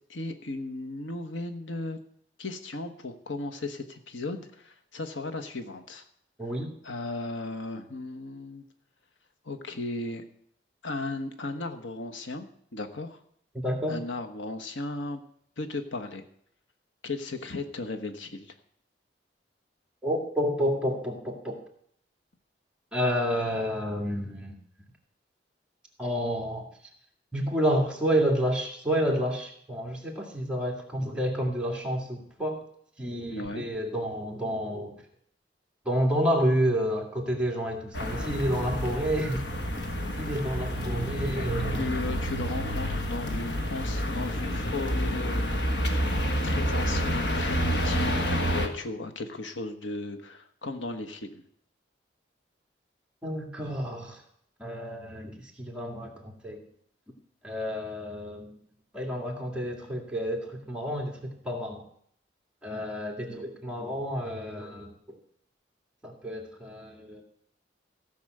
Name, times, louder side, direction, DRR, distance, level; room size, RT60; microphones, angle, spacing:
voice 1, 0.1-2.0 2.4-6.0 6.8-8.6 9.4-10.2 10.8-13.2 13.9-15.2 15.6-16.2 17.0-18.5 33.3-33.7 41.7-46.1 46.4-51.4, left 2 dB, 85° left, 6 dB, 1.2 m, -36 dB
voice 2, 6.4-6.7 13.6-14.0 20.0-21.6 22.9-24.6 26.0-26.7 27.3-32.6 33.0-34.9 35.9-39.4 40.2-41.9 53.2-54.2 54.6-56.6 57.4-58.6 58.9-61.8 62.6-65.2 66.0-67.2, equal, 5° right, -1 dB, 2.1 m, -29 dB
sound 1, 37.9-48.7, equal, 65° left, 1.4 m, -29 dB
15.5 x 6.1 x 7.7 m, 0.66 s
head